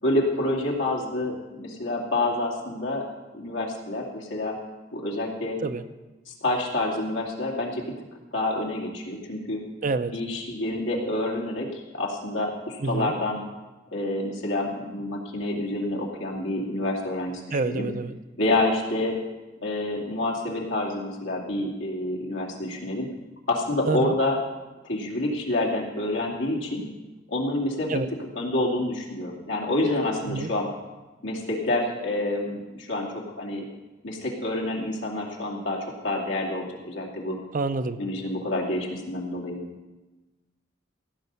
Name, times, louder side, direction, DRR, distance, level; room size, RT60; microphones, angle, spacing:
voice 1, 0.0-3.1 3.3-4.6 4.9-5.6 6.3-7.8 8.3-9.6 10.1-13.4 13.9-17.9 18.4-19.2 19.6-23.1 23.5-24.4 24.8-26.8 27.3-28.0 28.4-30.7 31.2-33.6 34.0-37.4 38.0-39.6, left 1 dB, 85° left, -2 dB, 2.5 m, -28 dB
voice 2, 9.8-10.1 12.8-13.1 17.5-18.2 23.9-24.1 27.9-28.1 30.2-30.5 37.5-38.0, right 3 dB, 45° right, 11 dB, 0.6 m, -27 dB
16.5 x 5.5 x 8.1 m, 1.1 s
head